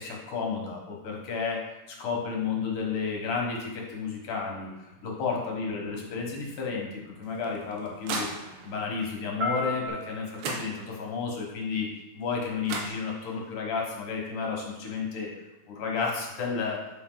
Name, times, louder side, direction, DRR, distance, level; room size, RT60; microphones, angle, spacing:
voice 1, 0.0-1.6 1.9-4.7 5.0-8.3 8.6-11.9 12.1-15.3 15.7-16.8, left 5 dB, 60° left, -1 dB, 2.7 m, -32 dB
sound 1, 4.9-9.9, left 1 dB, 55° right, 1.5 m, -38 dB
sound 2, 7.2-8.9 10.0-10.1 10.4-11.2 12.3-12.4 12.7-13.5, right 3 dB, 90° right, 3.3 m, -37 dB
10.5 x 5.6 x 4.0 m, 1.0 s
omnidirectional pair, 4.6 m